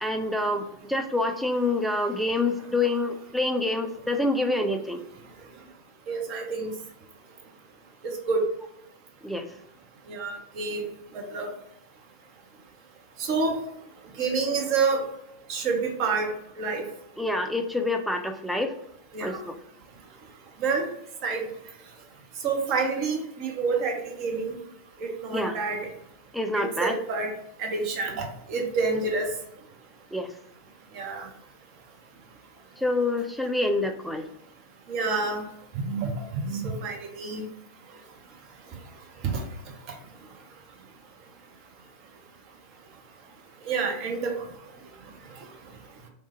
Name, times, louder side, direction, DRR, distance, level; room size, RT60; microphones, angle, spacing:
voice 1, 0.0-5.0 9.2-9.5 17.2-18.7 19.2-19.5 25.3-25.6 26.3-27.0 30.1-30.3 32.8-34.3, left 2 dB, ahead, 5 dB, 0.3 m, -27 dB
voice 2, 6.1-6.7 8.0-8.4 10.1-10.9 11.1-11.5 13.2-13.6 14.2-15.0 15.5-16.3 16.6-16.8 19.1-19.4 20.6-20.9 21.2-21.5 22.4-24.6 25.0-25.9 26.5-27.3 27.6-29.3 30.9-31.3 34.9-35.4 35.7-37.5 39.3-39.4 43.6-44.4, right 4 dB, 40° right, 2 dB, 0.6 m, -28 dB
3.1 x 2.1 x 2.9 m, 0.77 s
figure-of-eight pair, 90°, 0 cm